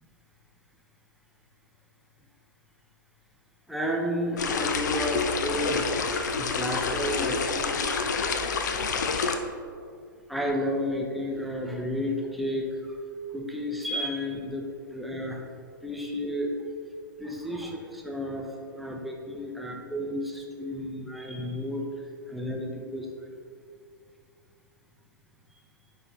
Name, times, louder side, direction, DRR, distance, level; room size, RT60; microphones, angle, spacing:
voice 1, 3.7-5.8 6.3-7.8 10.3-12.7 13.3-15.4 15.8-16.6 17.2-18.5 18.7-21.9 22.3-23.1, equal, ahead, -1 dB, 0.7 m, -31 dB
sound 1, 4.4-9.4, left 5 dB, 55° left, 0.6 m, -28 dB
9.6 x 3.4 x 3.7 m, 2.2 s
figure-of-eight pair, 110°, 11 cm